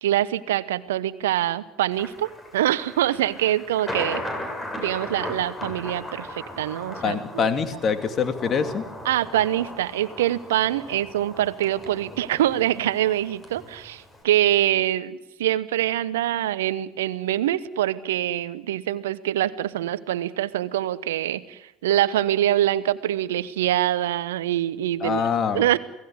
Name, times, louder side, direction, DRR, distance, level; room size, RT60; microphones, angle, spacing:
voice 1, 0.0-4.2 4.8-7.5 9.0-25.2 25.5-25.8, right 13 dB, 70° right, 18 dB, 1.0 m, -24 dB
Thunder, 1.9-14.2, left 1 dB, 20° left, 7.5 m, -37 dB
voice 2, 7.0-8.8 25.0-25.8, left 6 dB, 35° left, 8 dB, 2.6 m, -25 dB
28.5 x 18.5 x 8.1 m, 0.91 s
figure-of-eight pair, 65°, 0 cm